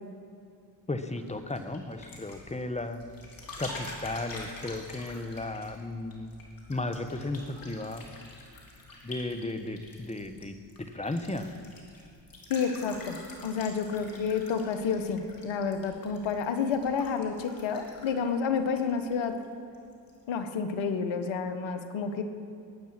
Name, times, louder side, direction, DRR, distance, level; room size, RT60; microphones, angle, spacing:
voice 1, 0.9-3.0 3.6-6.3 6.7-8.1 9.0-11.5, left 2 dB, 15° left, 9 dB, 1.2 m, -35 dB
sound 1, 1.1-19.4 19.7-20.2, left 2 dB, 45° left, 3.7 m, -47 dB
voice 2, 12.5-19.4 20.3-22.2, left 6 dB, 65° left, 8 dB, 1.5 m, -30 dB
21.0 x 9.2 x 6.0 m, 2.4 s
supercardioid pair, 65°, 49 cm